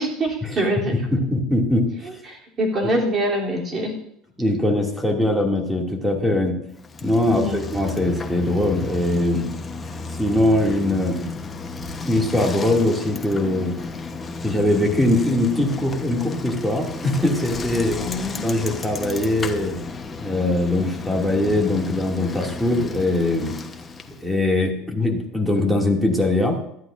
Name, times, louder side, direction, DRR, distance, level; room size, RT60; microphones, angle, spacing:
voice 1, 0.0-1.0 2.3-4.0 7.3-7.6 18.0-18.5, equal, 25° right, -1 dB, 3.2 m, -24 dB
voice 2, 0.9-2.2 4.4-6.6 7.0-9.5 10.1-11.3 12.0-13.7 14.4-18.0 18.4-19.8 20.2-23.6 24.1-26.6, left 1 dB, 5° right, 1 dB, 2.4 m, -21 dB
Bicycle, 6.8-24.3, left 3 dB, 20° left, 1.0 m, -33 dB
20.0 x 13.5 x 2.6 m, 0.73 s
cardioid pair, 140°, 0 cm